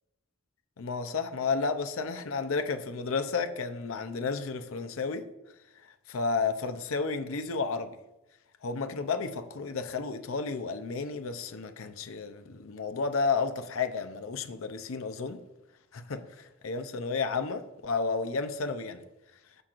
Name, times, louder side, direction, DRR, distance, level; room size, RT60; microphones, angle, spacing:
voice 1, 0.8-5.2 6.1-7.9 8.6-15.4 15.9-19.0, left 4 dB, 70° left, 9 dB, 0.6 m, -32 dB
13.0 x 4.5 x 2.5 m, 0.95 s
head